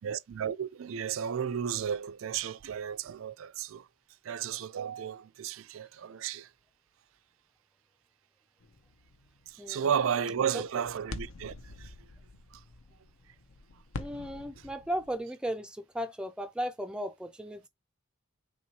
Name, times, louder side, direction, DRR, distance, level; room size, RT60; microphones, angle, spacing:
voice 1, 0.0-3.8 4.2-6.5 9.5-11.9, right 8 dB, 75° right, 0.4 m, -33 dB
sound 1, 8.6-15.2, left 2 dB, 75° left, 0.6 m, -46 dB
voice 2, 9.6-9.9 10.5-10.6 14.0-17.7, equal, 5° right, 0.3 m, -36 dB
4.4 x 3.0 x 2.7 m
head